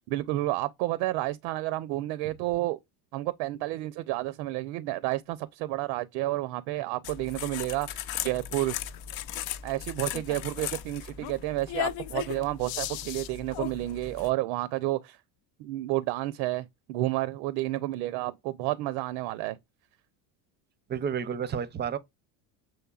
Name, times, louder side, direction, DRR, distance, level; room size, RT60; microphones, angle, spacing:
voice 1, 0.1-2.8 3.1-8.8 9.6-15.2 15.6-19.6, right 17 dB, 70° right, 0.6 m, -30 dB
sound 1, 7.0-14.3, left 12 dB, 65° left, 0.7 m, -36 dB
voice 2, 20.9-22.0, right 7 dB, 25° right, 0.5 m, -30 dB
7.1 x 3.2 x 2.3 m
supercardioid pair, 105°, 45 cm